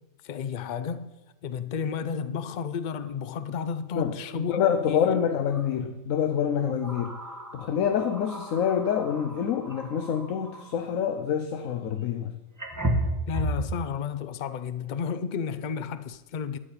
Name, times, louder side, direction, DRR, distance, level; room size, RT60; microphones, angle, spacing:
voice 1, 0.2-1.1 1.4-4.6 4.9-5.1 13.3-16.6, left 6 dB, 50° left, 0.5 m, -32 dB
sound 1, 3.0-3.1 3.5-3.7 5.5-5.7 6.5-10.8 12.0-12.1 12.6-13.7, right 1 dB, 15° right, 1.2 m, -34 dB
voice 2, 3.9-7.2 7.5-12.3, left 8 dB, 80° left, 1.1 m, -27 dB
12.5 x 5.0 x 8.7 m
omnidirectional pair, 1.4 m